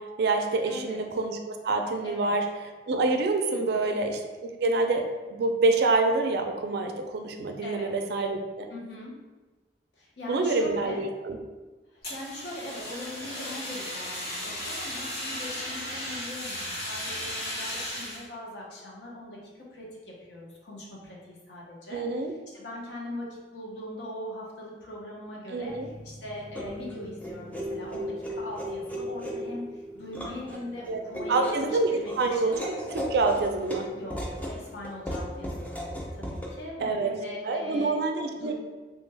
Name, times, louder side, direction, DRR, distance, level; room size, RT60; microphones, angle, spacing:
voice 1, 0.0-8.7 10.3-11.4 21.9-22.3 25.5-25.9 30.9-31.0 31.3-33.9 36.8-37.1 37.4-38.5, right 3 dB, 65° right, 5 dB, 0.4 m, -27 dB
voice 2, 0.6-1.0 2.0-2.3 3.5-3.9 7.6-7.9 8.7-9.2 9.9-11.1 11.9-22.1 22.5-23.3 23.5-31.5 31.9-32.6 33.9-35.8 36.1-38.0 38.3-38.5, left 1 dB, 80° left, -3 dB, 0.8 m, -41 dB
Fire, 12.0-18.2, left 1 dB, 55° left, 1.4 m, -35 dB
sound 1, 25.7-36.5, equal, 10° left, 0.4 m, -36 dB
3.2 x 2.2 x 3.2 m, 1.2 s
head